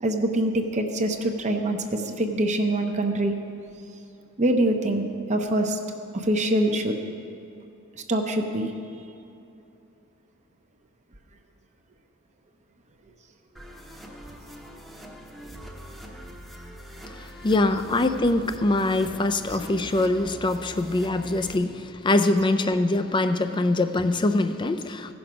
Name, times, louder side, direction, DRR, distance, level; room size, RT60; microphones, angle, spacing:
voice 1, 0.0-3.3 4.4-5.0 5.3-5.8 6.1-7.0 8.1-8.7 19.5-19.6, right 1 dB, 35° right, 4 dB, 0.7 m, -24 dB
sound 1, 13.6-21.6, equal, ahead, 0.9 m, -43 dB
voice 2, 17.0-25.1, left 2 dB, 20° left, 9 dB, 0.4 m, -23 dB
16.0 x 6.0 x 5.0 m, 2.8 s
head